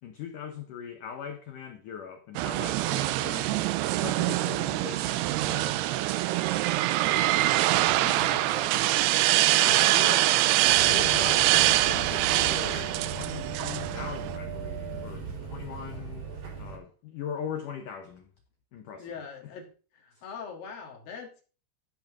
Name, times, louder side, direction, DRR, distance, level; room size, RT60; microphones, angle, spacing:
voice 1, 0.0-3.7 4.0-5.9 9.5-10.5 10.8-12.0 12.3-18.3 18.7-19.2 20.1-20.2, left 7 dB, 90° left, 1.8 m, -40 dB
sound 1, 2.4-14.4, right 15 dB, 90° right, 2.3 m, -24 dB
voice 2, 7.9-8.8 11.9-12.2 14.9-15.1 15.6-15.7 15.9-16.0 19.0-19.7 19.9-21.4, left 6 dB, 60° left, 3.1 m, -42 dB
sound 2, 10.6-16.8, right 5 dB, 45° right, 3.3 m, -37 dB
13.0 x 5.2 x 6.0 m
omnidirectional pair, 5.4 m